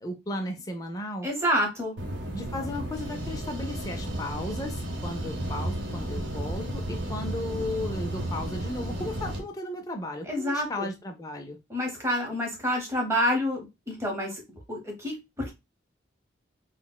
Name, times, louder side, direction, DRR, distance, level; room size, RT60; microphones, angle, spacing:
voice 1, 0.0-1.3 2.3-11.6, left 1 dB, 20° left, 4 dB, 0.3 m, -35 dB
voice 2, 1.2-2.0 10.3-10.9 11.7-14.4 14.7-15.5, equal, 15° right, 0 dB, 0.8 m, -28 dB
sound 1, 2.0-9.4, right 1 dB, 65° right, 0.7 m, -33 dB
3.9 x 2.0 x 2.2 m, 0.23 s
head